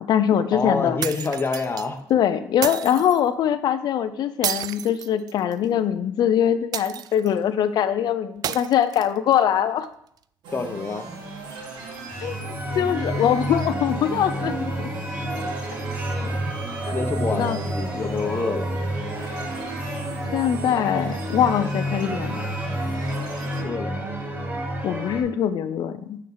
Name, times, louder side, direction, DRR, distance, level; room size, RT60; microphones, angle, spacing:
voice 1, 0.0-1.0 2.1-9.9 12.2-14.9 16.9-17.1 17.3-17.6 20.3-22.4 24.8-26.2, left 9 dB, 65° left, 12 dB, 0.5 m, -23 dB
voice 2, 0.5-2.0 10.5-11.1 16.2-16.6 16.9-18.7 23.6-24.1, left 4 dB, 30° left, 6 dB, 1.1 m, -27 dB
sound 1, 1.0-1.9 2.6-3.2 4.4-5.6 6.7-7.4 8.4-9.4, right 10 dB, 55° right, 0.3 m, -31 dB
sound 2, 10.4-23.6, right 3 dB, 75° right, 1.6 m, -38 dB
sound 3, 12.1-25.2, right 1 dB, 25° right, 1.6 m, -29 dB
9.2 x 4.5 x 3.9 m, 0.69 s
supercardioid pair, 75°, 8 cm